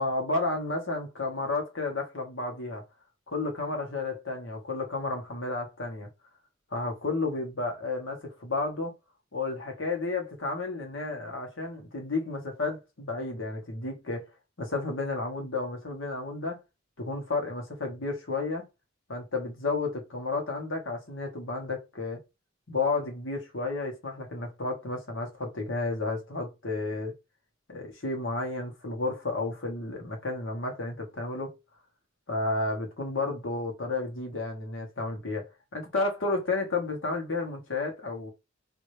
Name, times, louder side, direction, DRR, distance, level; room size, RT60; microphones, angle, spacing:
voice 1, 0.0-2.8 3.3-6.1 6.7-8.9 9.3-14.3 14.6-16.6 17.0-18.6 19.1-22.2 22.7-27.1 27.7-31.5 32.3-38.3, left 3 dB, 85° left, 1.4 m, -32 dB
3.2 x 2.9 x 2.7 m
head